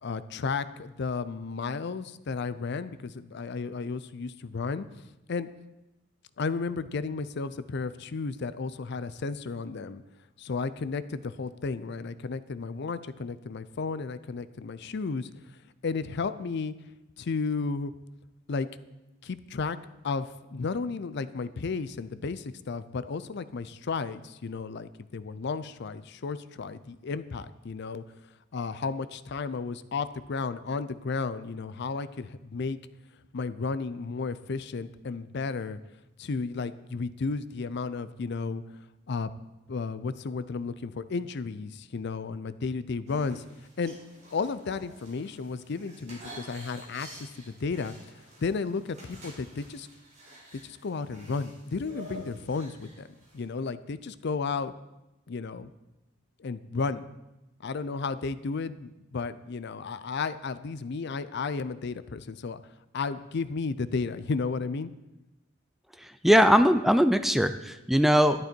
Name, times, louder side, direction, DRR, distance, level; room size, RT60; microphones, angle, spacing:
voice 1, 0.0-5.5 6.4-10.0 10.4-16.7 17.2-17.9 18.5-18.7 19.2-19.8 20.0-28.0 28.5-32.8 33.3-35.8 36.2-39.3 39.7-44.0 44.3-49.9 50.5-54.7 55.3-55.7 56.4-57.1 57.6-62.6 62.9-64.9, left 4 dB, 55° left, 15 dB, 0.5 m, -33 dB
sound 1, 43.0-53.4, right 1 dB, 35° right, 3.9 m, -49 dB
voice 2, 66.0-68.4, equal, ahead, 10 dB, 0.4 m, -21 dB
11.5 x 11.0 x 4.4 m, 0.98 s
head